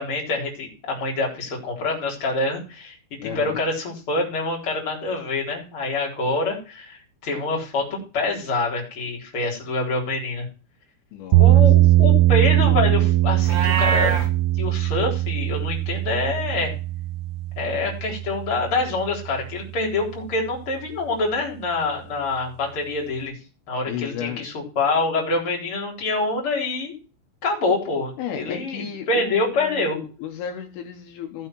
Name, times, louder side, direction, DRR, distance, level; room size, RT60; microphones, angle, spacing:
voice 1, 0.0-3.0 3.2-10.5 11.4-14.1 14.6-16.7 17.6-23.3 23.7-26.9 27.4-30.0, left 3 dB, 30° left, -1 dB, 4.2 m, -26 dB
voice 2, 3.2-3.6 11.1-11.6 12.0-12.1 23.9-24.5 28.2-31.5, left 8 dB, 75° left, 4 dB, 3.7 m, -34 dB
sound 1, 11.3-19.4, right 16 dB, 80° right, 3.2 m, -20 dB
Livestock farm animals working animals, 13.4-14.3, right 6 dB, 55° right, 1.9 m, -23 dB
15.0 x 6.5 x 4.6 m, 0.34 s
omnidirectional pair, 5.9 m